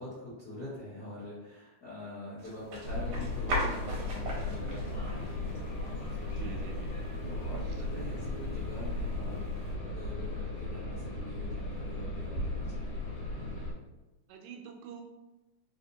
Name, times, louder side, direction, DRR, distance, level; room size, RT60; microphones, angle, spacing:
voice 1, 0.0-12.9, left 1 dB, 85° left, -10 dB, 0.8 m, -45 dB
sound 1, 2.4-9.7, equal, 65° right, 1.4 m, -40 dB
sound 2, 2.8-13.7, left 1 dB, 60° left, 2.3 m, -36 dB
voice 2, 6.4-7.0 14.3-15.0, right 7 dB, 80° right, 2 dB, 2.0 m, -46 dB
4.9 x 2.8 x 2.8 m, 1.0 s
omnidirectional pair, 3.8 m